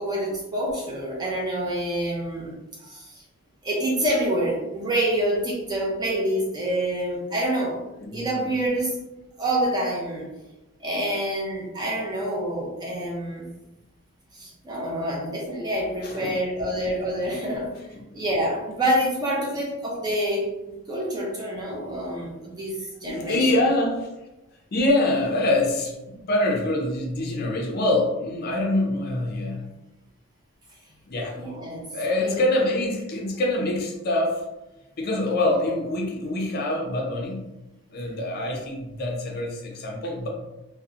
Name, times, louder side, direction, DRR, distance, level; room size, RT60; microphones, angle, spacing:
voice 1, 0.0-2.5 2.8-3.2 3.6-7.8 8.1-9.0 9.4-10.3 10.8-13.5 14.3-17.7 18.1-23.4 31.3-31.9 32.2-32.4, right 1 dB, 20° right, -4 dB, 0.5 m, -27 dB
voice 2, 8.0-8.5 16.0-16.4 18.1-18.2 23.1-24.1 24.7-29.6 31.1-31.4 31.9-34.4 35.0-37.4 37.9-40.3, left 1 dB, 45° left, 0 dB, 0.4 m, -25 dB
2.6 x 2.0 x 2.4 m, 0.99 s
head